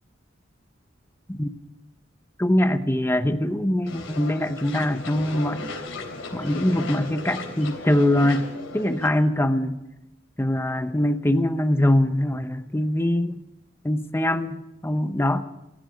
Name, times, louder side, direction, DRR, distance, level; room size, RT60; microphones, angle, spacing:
voice 1, 2.4-5.6 6.3-9.8 10.4-13.4 13.8-15.4, left 1 dB, 10° left, 10 dB, 0.8 m, -23 dB
sound 1, 3.9-9.1, left 2 dB, 85° left, 3.5 m, -36 dB
16.0 x 14.0 x 6.4 m, 0.92 s
head